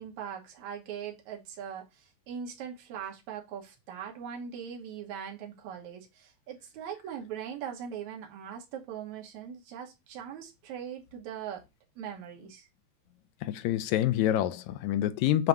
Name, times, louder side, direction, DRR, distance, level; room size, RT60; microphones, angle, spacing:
voice 1, 0.0-1.8 2.3-11.6 12.0-12.7, right 8 dB, 80° right, 2.6 m, -40 dB
voice 2, 13.4-15.5, left 12 dB, 80° left, 1.9 m, -27 dB
7.5 x 2.7 x 4.6 m
omnidirectional pair, 3.3 m